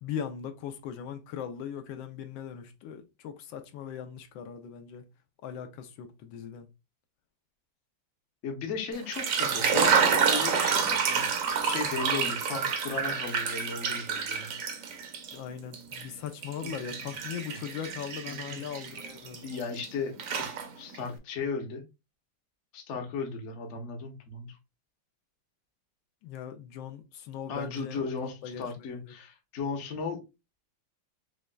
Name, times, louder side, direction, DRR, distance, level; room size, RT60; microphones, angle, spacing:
voice 1, 0.0-5.1 5.4-6.7 15.3-19.5 26.2-29.1, left 8 dB, 80° left, 1.3 m, -39 dB
voice 2, 8.4-11.3 11.6-14.6 16.6-17.0 17.5-17.6 18.3-18.6 19.4-20.2 20.8-21.8 22.7-24.6 27.5-30.2, left 4 dB, 50° left, 0.9 m, -36 dB
sound 1, 9.0-15.4 15.7-19.9 20.2-21.0, right 6 dB, 60° right, 0.9 m, -28 dB
6.2 x 2.3 x 2.2 m
omnidirectional pair, 2.1 m